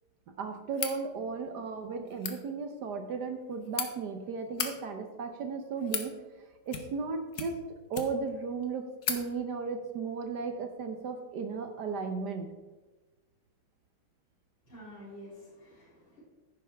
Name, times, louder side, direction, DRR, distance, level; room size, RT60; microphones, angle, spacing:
voice 1, 0.3-6.2 6.6-7.6 7.9-12.5, right 5 dB, 65° right, 6 dB, 1.2 m, -35 dB
sound 1, 0.7-1.0 2.1-2.4 3.3-3.9 4.4-4.7 5.5-6.1 6.7-7.1 7.3-8.3 8.6-8.7 9.0-9.2, left 7 dB, 55° left, 1.4 m, -35 dB
voice 2, 14.7-16.2, equal, 70° left, -13 dB, 4.3 m, -49 dB
10.5 x 9.3 x 3.4 m, 1.2 s
omnidirectional pair, 2.3 m